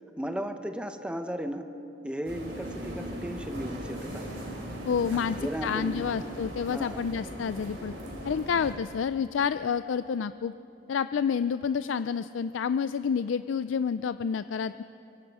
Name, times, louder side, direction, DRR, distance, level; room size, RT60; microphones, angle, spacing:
voice 1, 0.2-1.7 2.0-4.3 5.1-6.0 6.6-7.1, equal, 5° right, 7 dB, 0.9 m, -35 dB
sound 1, 2.2-8.7, equal, 70° right, 4.9 m, -39 dB
voice 2, 4.9-7.9 8.2-10.5 10.9-14.8, left 6 dB, 90° left, 13 dB, 0.4 m, -29 dB
25.5 x 23.5 x 4.9 m, 2.9 s
head